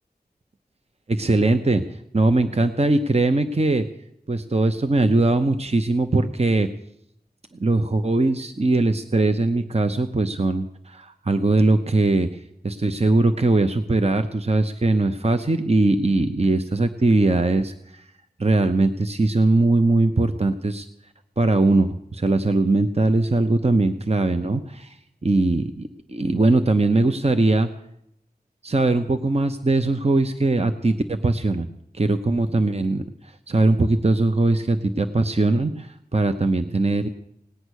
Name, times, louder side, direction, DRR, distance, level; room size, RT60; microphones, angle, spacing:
voice 1, 1.1-1.8 2.1-3.8 4.3-6.7 7.6-12.3 12.6-18.0 18.4-20.9 21.4-25.0 25.2-27.7 28.6-31.7 31.9-33.0 33.5-37.1, right 2 dB, 40° right, 8 dB, 0.8 m, -20 dB
18.0 x 9.6 x 6.4 m, 0.76 s
wide cardioid pair, 45°, 17 cm